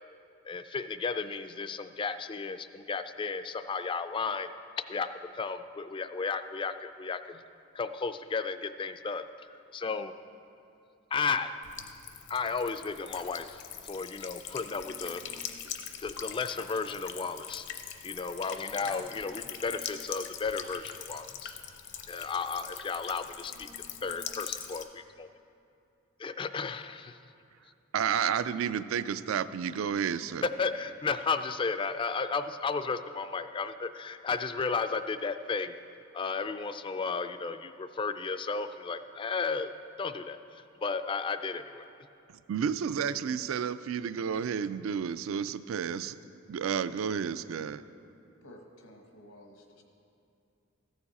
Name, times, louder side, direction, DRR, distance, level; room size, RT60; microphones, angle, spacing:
voice 1, 0.4-4.5 4.9-5.1 5.3-7.4 7.7-9.2 9.5-10.1 11.1-11.6 12.3-13.6 13.8-15.3 16.0-17.7 18.0-21.5 22.1-23.7 24.0-25.3 26.2-27.2 30.6-35.7 36.1-39.7 40.0-41.9, left 4 dB, 25° left, 11 dB, 0.3 m, -34 dB
Buzz / Water tap faucet / Trickle dribble, 11.6-24.8, left 8 dB, 60° left, 0.6 m, -42 dB
voice 2, 27.9-30.4 42.3-46.2 46.5-47.8, right 7 dB, 75° right, 14 dB, 0.3 m, -31 dB
voice 3, 48.4-49.8, left 1 dB, 90° left, 2 dB, 1.3 m, -52 dB
14.5 x 7.0 x 4.2 m, 2.7 s
head